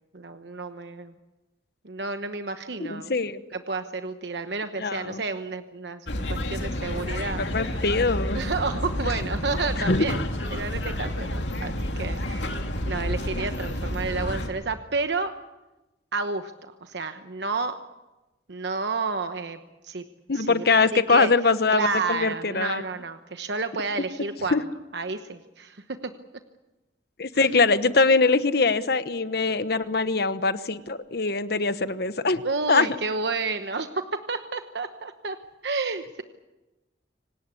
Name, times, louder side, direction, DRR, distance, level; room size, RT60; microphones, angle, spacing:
voice 1, 0.1-1.1 1.8-3.1 3.5-7.8 8.3-10.2 10.5-12.5 12.8-15.3 16.1-17.8 18.5-19.6 19.8-20.0 20.3-20.7 20.9-21.3 21.7-24.6 24.9-26.0 27.3-27.5 32.4-34.0 34.3-35.4 35.6-36.2, right 4 dB, 70° right, 8 dB, 1.0 m, -31 dB
voice 2, 2.8-3.4 4.8-5.2 7.4-8.4 9.9-10.0 20.3-22.8 24.5-24.6 27.2-32.4 32.7-32.9, left 3 dB, 60° left, 12 dB, 1.1 m, -23 dB
sound 1, 6.1-14.5, left 1 dB, 80° left, 2.6 m, -30 dB
26.0 x 18.5 x 8.4 m, 1.0 s
head